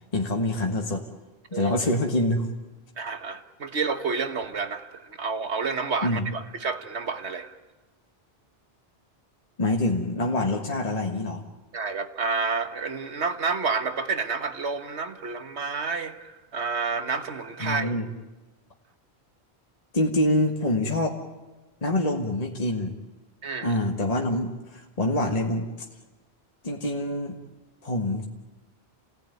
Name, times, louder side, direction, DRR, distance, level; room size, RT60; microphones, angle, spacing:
voice 1, 0.1-1.0 1.5-2.5 6.0-6.3 9.6-11.4 17.6-18.1 19.9-21.2 21.8-22.9 23.6-25.7 26.6-27.4 27.8-28.3, left 1 dB, 35° left, 1 dB, 1.7 m, -25 dB
voice 2, 3.0-7.6 11.7-17.9 23.4-23.7, right 4 dB, 85° right, 8 dB, 1.8 m, -29 dB
28.5 x 18.0 x 9.3 m, 1.2 s
omnidirectional pair, 1.1 m